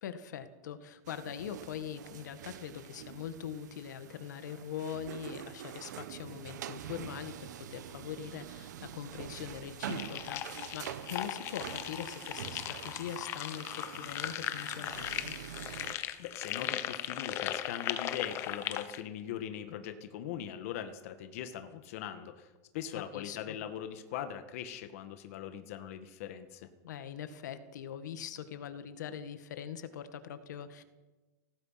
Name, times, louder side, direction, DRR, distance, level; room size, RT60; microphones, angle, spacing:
voice 1, 0.0-15.4 22.9-23.6 26.8-30.8, left 8 dB, 90° left, 10 dB, 1.9 m, -42 dB
sound 1, 1.1-16.0, right 10 dB, 90° right, 1.6 m, -45 dB
sound 2, 9.9-19.0, left 12 dB, 30° left, 1.1 m, -38 dB
voice 2, 15.9-26.7, left 10 dB, 55° left, 8 dB, 1.9 m, -41 dB
26.0 x 18.0 x 5.9 m, 1.2 s
supercardioid pair, 170°, 9 cm